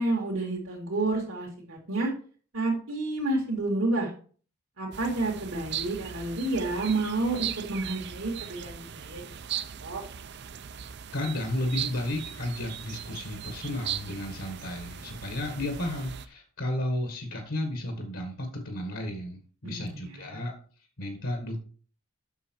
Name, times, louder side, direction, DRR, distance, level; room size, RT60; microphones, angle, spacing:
voice 1, 0.0-2.1 2.5-4.1 4.8-10.0 19.7-20.0, right 2 dB, 80° right, -4 dB, 2.4 m, -30 dB
sound 1, 4.9-16.3, right 9 dB, 50° right, 0.5 m, -38 dB
voice 2, 11.1-20.5 21.0-21.6, left 1 dB, 70° left, 4 dB, 1.6 m, -33 dB
8.1 x 6.6 x 4.6 m, 0.42 s
head